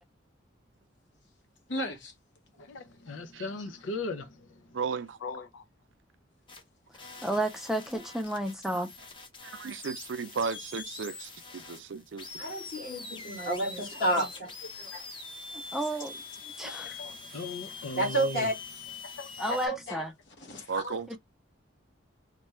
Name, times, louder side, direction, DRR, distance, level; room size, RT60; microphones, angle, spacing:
voice 1, 1.7-2.1 3.4-3.7 14.8-15.1 19.5-20.0 20.4-21.2, equal, 65° left, 1.0 m, -37 dB
voice 2, 2.7-4.2 5.2-5.6 16.6-16.7 17.0-18.3 19.2-19.6, left 3 dB, 85° left, 0.5 m, -38 dB
voice 3, 4.7-5.2 9.4-12.3 20.7-21.1, right 5 dB, 70° right, 0.4 m, -35 dB
sound 1, 6.5-6.6 6.9-19.7, left 4 dB, 25° left, 0.7 m, -44 dB
voice 4, 7.2-8.9 15.7-16.1 16.6-17.0 19.4-20.1, right 1 dB, ahead, 0.4 m, -31 dB
voice 5, 12.4-14.5 18.0-18.5, right 1 dB, 50° left, 1.9 m, -29 dB
3.2 x 2.2 x 4.2 m
head